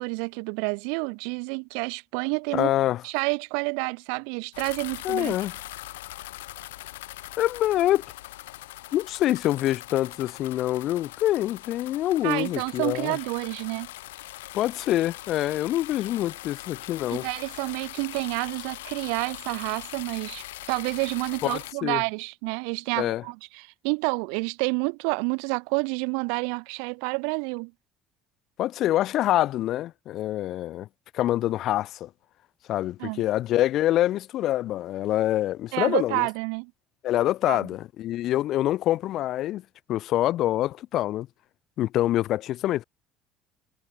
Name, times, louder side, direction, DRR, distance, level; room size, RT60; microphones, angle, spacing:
voice 1, 0.0-2.7 3.0-5.3 12.2-13.9 17.1-27.7 33.0-33.2 35.7-36.7 37.5-37.7, right 40 dB or more, 65° right, 1.3 m, -29 dB
voice 2, 2.5-3.0 5.0-5.6 7.4-8.0 8.9-13.2 14.5-17.3 21.4-22.0 23.0-23.2 28.6-30.9 31.1-32.1 32.7-36.3 37.0-39.6 39.9-41.3 41.8-42.8, left 14 dB, 55° left, 0.7 m, -25 dB
sound 1, 4.5-21.7, left 17 dB, 75° left, 4.0 m, -41 dB
figure-of-eight pair, 60°, 0 cm